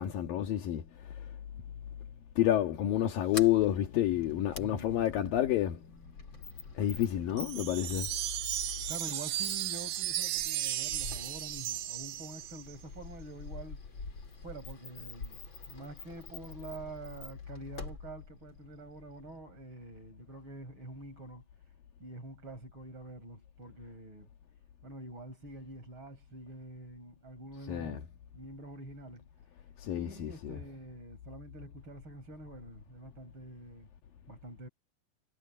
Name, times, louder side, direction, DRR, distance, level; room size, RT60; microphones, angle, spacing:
voice 1, 0.0-1.4 2.4-6.1 6.7-8.1 27.7-28.0 29.8-30.6, left 12 dB, 75° left, 3.4 m, -30 dB
Sliding door, 3.0-19.4, left 4 dB, 35° left, 3.8 m, -47 dB
voice 2, 4.6-5.1 8.9-13.8 14.4-15.4 15.7-21.5 22.0-24.3 24.8-28.1 28.3-29.3 29.9-33.9 34.3-34.7, right 2 dB, 35° right, 6.8 m, -46 dB
sound 1, 7.4-12.7, right 13 dB, 70° right, 2.4 m, -35 dB
omnidirectional pair, 4.2 m